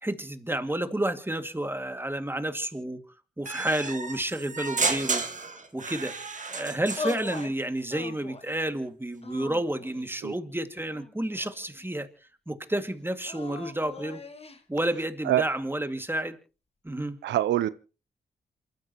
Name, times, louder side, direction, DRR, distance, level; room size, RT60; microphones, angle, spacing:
voice 1, 0.0-3.0 3.4-5.2 5.7-6.1 6.5-12.1 12.5-14.2 14.7-16.4 16.8-17.2, right 1 dB, 10° right, 2.2 m, -30 dB
sound 1, 3.5-7.5, right 4 dB, 45° right, 2.1 m, -32 dB
sound 2, 7.0-7.5 7.9-8.6 9.2-10.1 10.9-11.9 13.2-14.6, left 3 dB, 35° left, 2.0 m, -39 dB
voice 2, 17.2-17.7, right 13 dB, 85° right, 0.7 m, -24 dB
27.5 x 13.5 x 3.0 m
supercardioid pair, 40°, 18 cm